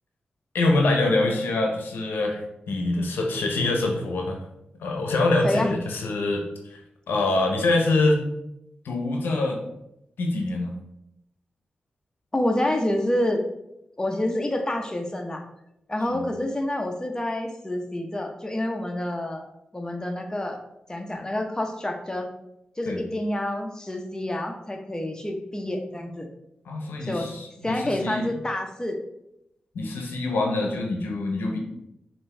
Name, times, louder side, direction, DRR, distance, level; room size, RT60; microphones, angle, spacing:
voice 1, 0.5-4.4 4.8-6.8 7.1-8.2 8.8-9.6 10.2-10.7 16.1-16.2 22.9-23.0 26.7-28.3 29.7-31.6, left 2 dB, 85° left, 2 dB, 0.7 m, -25 dB
voice 2, 12.3-13.4 14.0-15.4 15.9-19.5 19.7-20.6 20.9-22.3 22.8-26.3 27.0-27.3 27.6-29.0, left 1 dB, 20° left, 3 dB, 0.8 m, -28 dB
5.3 x 2.6 x 3.3 m, 0.83 s
cardioid pair, 45°, 3 cm